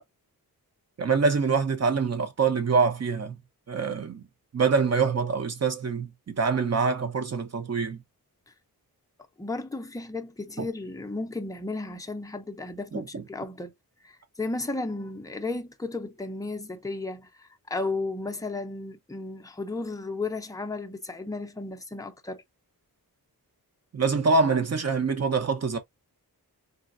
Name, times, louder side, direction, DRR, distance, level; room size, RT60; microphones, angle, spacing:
voice 1, 1.0-3.4 3.7-4.3 4.5-8.0 10.6-10.7 12.9-13.2 23.9-25.8, right 4 dB, 45° right, 0.9 m, -25 dB
voice 2, 9.4-13.7 14.0-22.4, left 3 dB, 10° left, 0.5 m, -34 dB
3.9 x 3.2 x 2.5 m
wide cardioid pair, 140°, 37 cm